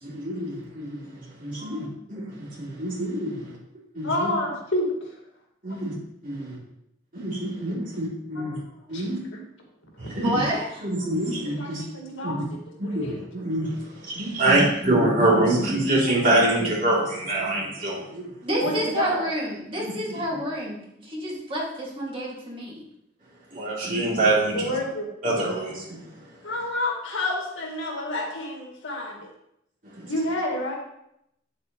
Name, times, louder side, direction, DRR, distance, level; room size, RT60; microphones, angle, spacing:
voice 1, 0.0-3.6 3.9-4.3 5.6-5.9 6.2-6.6 7.1-8.6 8.9-9.2 10.0-10.4 10.8-11.8 12.2-12.4 12.8-18.3 18.6-18.7 19.8-20.4 23.5-24.8 25.2-26.5 30.0-30.1, right 1 dB, 40° right, -6 dB, 3.0 m, -26 dB
voice 2, 4.0-5.1 8.4-8.5 8.9-9.0 10.1-10.3 11.6-12.4 12.8-13.2 18.6-19.2 24.5-25.1 26.4-29.3 30.1-30.8, left 1 dB, 80° left, 0 dB, 2.0 m, -29 dB
voice 3, 10.2-10.9 18.4-22.8, right 1 dB, 25° right, -4 dB, 2.2 m, -29 dB
8.3 x 7.9 x 3.1 m, 0.78 s
head